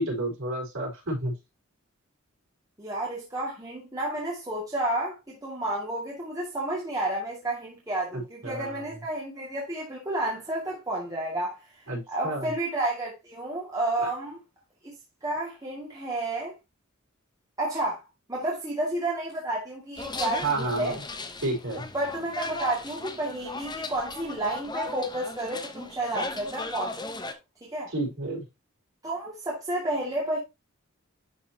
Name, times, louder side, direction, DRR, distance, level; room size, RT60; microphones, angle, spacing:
voice 1, 0.0-1.4 8.1-9.0 11.9-12.5 20.4-21.0 21.4-21.8 27.9-28.4, right 2 dB, 75° right, 4.6 m, -30 dB
voice 2, 2.8-11.6 12.1-14.4 15.2-16.5 17.6-18.0 18.3-21.0 21.9-27.3 27.6-27.9 29.0-30.4, right 1 dB, 15° right, 2.1 m, -31 dB
sound 1, 20.0-27.3, left 3 dB, 20° left, 0.8 m, -37 dB
11.0 x 4.5 x 2.8 m
head